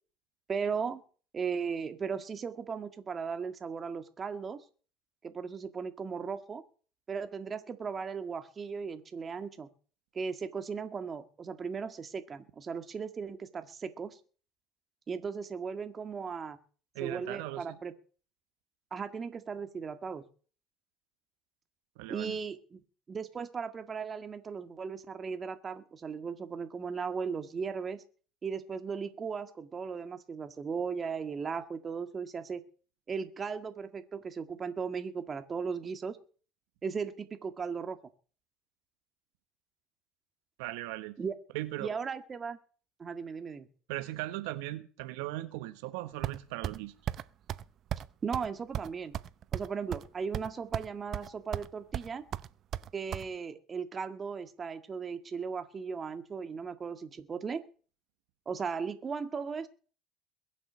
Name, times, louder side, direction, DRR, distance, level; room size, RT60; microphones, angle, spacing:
voice 1, 0.5-1.0 1.3-4.6 5.2-6.6 7.1-9.7 10.1-14.2 15.1-16.6 17.0-17.9 18.9-20.2 22.1-22.8 23.1-28.0 28.4-32.6 33.1-36.2 36.8-38.0 41.2-41.3 41.8-42.6 43.0-43.7 48.2-49.2 49.5-52.3 52.9-57.6 58.5-59.7, right 5 dB, 30° right, 8 dB, 1.8 m, -37 dB
voice 2, 16.9-17.7 22.0-22.3 40.6-41.1 41.5-41.9 43.9-46.9, right 17 dB, 80° right, 10 dB, 1.4 m, -38 dB
sound 1, 46.2-46.8 47.1-47.2 47.5-47.6 47.9-48.1 48.3-48.5 48.7-50.1 50.3-50.9 51.1-51.7 51.9-53.2, right 11 dB, 50° right, 0.7 m, -35 dB
21.5 x 7.6 x 6.3 m, 0.41 s
supercardioid pair, 100°, 0 cm